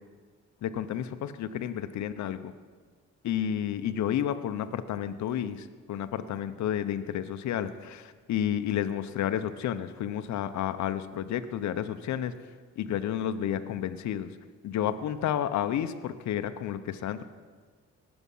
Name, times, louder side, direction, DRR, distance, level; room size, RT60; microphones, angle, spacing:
voice 1, 0.6-2.5 3.2-12.4 12.8-14.3 14.6-17.2, left 10 dB, 70° left, 10 dB, 0.8 m, -31 dB
18.5 x 7.1 x 5.5 m, 1.5 s
cardioid pair, 90°, 30 cm